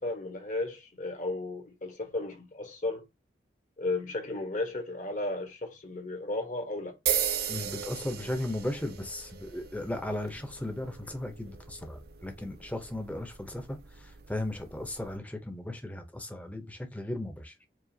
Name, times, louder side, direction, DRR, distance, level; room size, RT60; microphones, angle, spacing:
voice 1, 0.0-3.0 3.8-6.9, left 2 dB, 45° left, 1.2 m, -34 dB
sound 1, 7.1-15.2, right 9 dB, 60° right, 0.6 m, -37 dB
voice 2, 7.5-13.8 14.3-17.5, left 1 dB, 10° left, 0.7 m, -36 dB
4.8 x 2.4 x 2.8 m
head